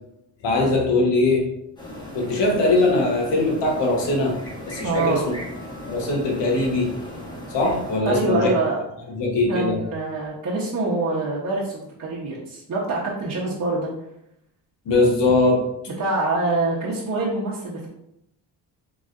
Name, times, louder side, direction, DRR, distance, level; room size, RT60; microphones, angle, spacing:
voice 1, 0.4-1.4 2.1-4.3 4.7-5.2 5.9-6.9 7.5-8.5 9.1-9.8 14.9-15.6, left 2 dB, 70° left, -1 dB, 1.0 m, -20 dB
sound 1, 1.8-8.0, equal, 10° left, 1.3 m, -37 dB
voice 2, 4.8-5.3 8.0-8.8 9.5-13.9 16.0-17.9, right 2 dB, 40° right, -7 dB, 0.9 m, -25 dB
3.9 x 3.2 x 2.5 m, 0.80 s
cardioid pair, 90°, 44 cm